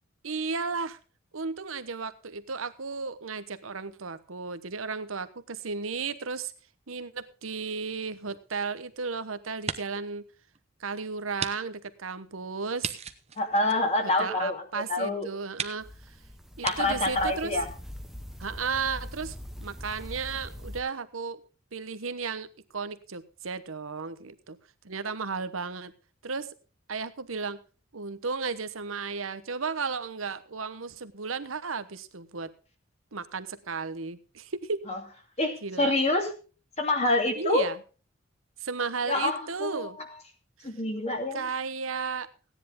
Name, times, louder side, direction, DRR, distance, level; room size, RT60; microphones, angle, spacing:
voice 1, 0.2-1.0 1.3-6.5 6.9-10.2 10.8-13.0 14.0-15.9 16.6-17.6 18.4-21.4 21.7-22.5 22.7-24.6 24.8-25.9 26.2-26.5 26.9-27.6 27.9-32.5 33.1-34.9 35.6-35.9 37.4-37.8 38.6-40.0 41.3-42.3, right 4 dB, 85° right, 12 dB, 1.1 m, -34 dB
sound 1, 8.2-9.1 9.5-10.1 10.5-10.6 11.4-11.6 11.8-11.9 12.8-14.4 15.0-15.1 15.5-15.8 16.6-16.8, right 6 dB, 35° right, 0.9 m, -36 dB
voice 2, 13.4-15.3 16.6-17.7 34.9-35.0 35.4-36.3 36.8-37.7 39.1-40.1 40.6-41.5, left 2 dB, 35° left, 3 dB, 2.6 m, -27 dB
sound 2, 15.8-20.8, equal, ahead, 1.1 m, -42 dB
16.5 x 10.0 x 3.8 m, 0.35 s
head